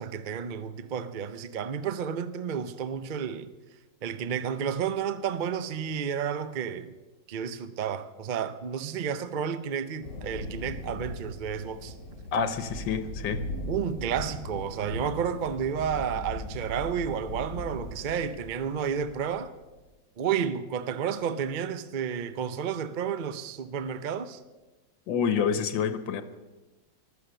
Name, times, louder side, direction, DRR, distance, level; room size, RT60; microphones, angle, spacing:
voice 1, 0.0-3.5 4.0-6.9 7.3-11.9 13.7-19.5 20.2-24.4, right 7 dB, 70° right, 0.4 m, -31 dB
Thunder, 10.0-19.7, left 1 dB, 50° left, 4.1 m, -39 dB
voice 2, 12.3-13.4 25.1-26.2, left 6 dB, 90° left, 1.7 m, -27 dB
15.0 x 12.5 x 6.7 m
omnidirectional pair, 2.0 m